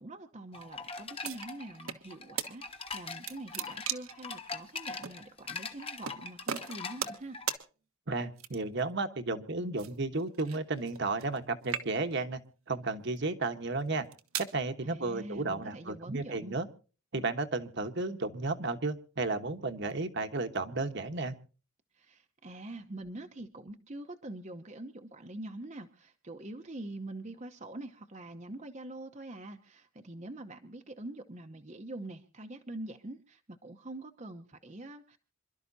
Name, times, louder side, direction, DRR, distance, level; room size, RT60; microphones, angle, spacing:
voice 1, 0.0-7.4 14.8-16.6 21.9-35.2, right 2 dB, 35° right, 5 dB, 0.9 m, -44 dB
sound 1, 0.5-7.6, left 4 dB, 25° left, 1.3 m, -42 dB
sound 2, 1.2-2.0 2.4-2.5 2.9-4.2 5.0-5.2 6.0-6.2 6.5-7.2 7.5-7.6 8.4-8.8 9.8-11.4 11.6-12.2 12.9-13.2 13.9-14.5, right 8 dB, 80° right, 1.4 m, -37 dB
voice 2, 8.1-12.4 12.7-14.0 14.4-16.7 17.1-21.3, right 3 dB, 55° right, 7 dB, 1.3 m, -33 dB
27.0 x 12.5 x 2.7 m, 0.36 s
head